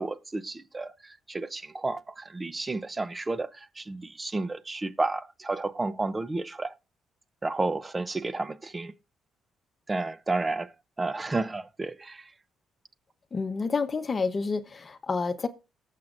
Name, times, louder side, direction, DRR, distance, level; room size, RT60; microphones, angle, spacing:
voice 1, 0.0-6.8 7.4-8.9 9.9-12.3, right 3 dB, 20° right, 0.8 m, -32 dB
voice 2, 13.3-15.5, left 4 dB, 35° left, 0.9 m, -29 dB
18.5 x 7.5 x 2.6 m
cardioid pair, 90°, 0 cm